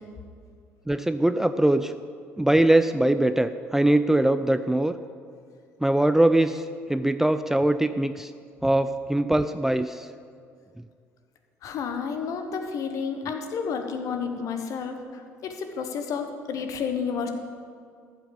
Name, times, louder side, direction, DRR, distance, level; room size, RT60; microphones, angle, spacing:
voice 1, 0.9-1.9 2.4-5.0 5.8-8.3 8.6-10.1, right 1 dB, 5° right, 10 dB, 0.4 m, -22 dB
voice 2, 11.6-17.3, left 6 dB, 50° left, 6 dB, 1.2 m, -31 dB
14.0 x 5.8 x 6.9 m, 2.2 s
figure-of-eight pair, 55°, 7 cm